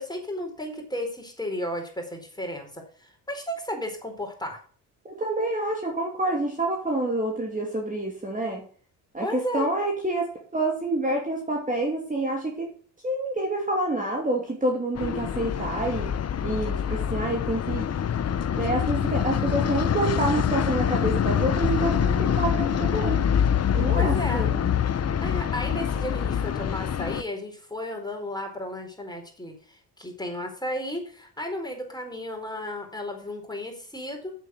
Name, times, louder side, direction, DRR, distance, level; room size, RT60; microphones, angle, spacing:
voice 1, 0.0-4.6 9.2-9.7 23.9-24.5 25.2-34.3, left 1 dB, 10° left, 3 dB, 4.4 m, -33 dB
voice 2, 5.1-8.6 9.1-12.7 13.0-16.1 16.4-17.9 18.5-23.2 23.7-24.6, right 2 dB, 20° right, 0 dB, 2.8 m, -28 dB
sound 1, 14.9-27.2, left 8 dB, 35° left, 0.8 m, -25 dB
8.1 x 7.6 x 6.4 m, 0.43 s
supercardioid pair, 65°, 44 cm